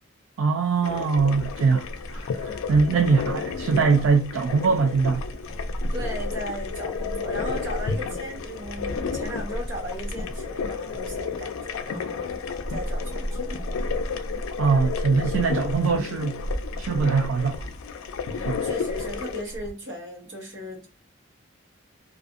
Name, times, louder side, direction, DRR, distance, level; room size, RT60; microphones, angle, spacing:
voice 1, 0.4-5.3 14.6-16.4 16.8-17.7 18.4-18.6, right 5 dB, 80° right, 0.3 m, -22 dB
sound 1, 0.8-19.4, left 5 dB, 85° left, 0.4 m, -33 dB
sound 2, 1.1-19.7, equal, 35° left, 0.6 m, -36 dB
voice 2, 5.9-12.4 12.7-13.7 18.3-20.9, equal, 65° right, 1.0 m, -37 dB
2.4 x 2.4 x 2.4 m
head